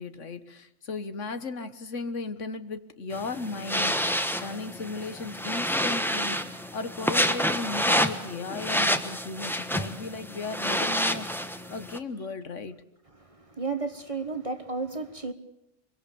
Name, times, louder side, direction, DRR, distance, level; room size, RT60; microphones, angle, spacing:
voice 1, 0.0-12.8, left 3 dB, 65° left, 11 dB, 1.6 m, -36 dB
sound 1, 3.1-12.0, equal, ahead, 1.2 m, -28 dB
voice 2, 13.1-15.3, right 4 dB, 25° right, 9 dB, 1.3 m, -33 dB
25.0 x 23.0 x 6.9 m, 0.86 s
omnidirectional pair, 1.4 m